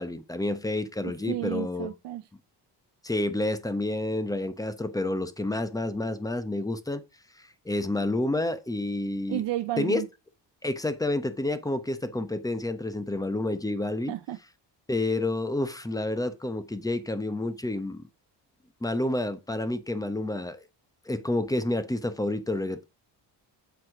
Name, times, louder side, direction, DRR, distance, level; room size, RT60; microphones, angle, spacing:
voice 1, 0.0-1.9 3.0-7.0 7.6-9.4 9.8-10.0 10.6-14.2 14.9-18.0 18.8-20.6 21.1-22.8, left 2 dB, 10° left, 1.0 m, -29 dB
voice 2, 1.0-2.3 9.3-10.1 14.1-14.4, right 13 dB, 70° right, 0.6 m, -32 dB
8.1 x 4.3 x 4.9 m
cardioid pair, 85°, 44 cm